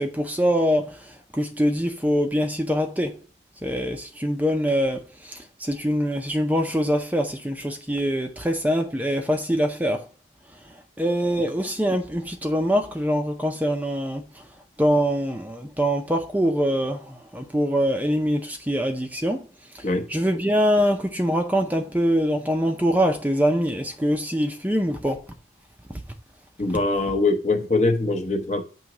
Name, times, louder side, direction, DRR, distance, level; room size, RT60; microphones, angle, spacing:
voice 1, 0.0-3.2 3.6-10.0 11.0-14.2 14.8-19.4 19.7-19.8 20.1-25.2 25.9-26.0, equal, 10° right, 0.5 m, -24 dB
voice 2, 26.6-28.6, left 2 dB, 40° left, 0.9 m, -22 dB
7.7 x 3.1 x 6.0 m
head